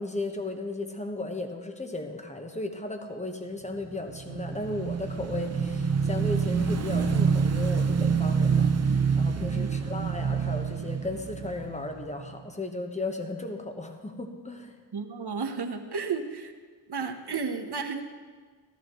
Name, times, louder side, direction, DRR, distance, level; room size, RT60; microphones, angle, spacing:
voice 1, 0.0-14.8, left 2 dB, 15° left, 4 dB, 1.1 m, -35 dB
Motorcycle / Engine, 3.9-12.4, right 6 dB, 40° right, 0.6 m, -27 dB
voice 2, 14.9-16.5 16.9-18.0, right 5 dB, 70° right, 6 dB, 1.0 m, -32 dB
14.0 x 13.5 x 3.0 m, 1.5 s
wide cardioid pair, 80°, 41 cm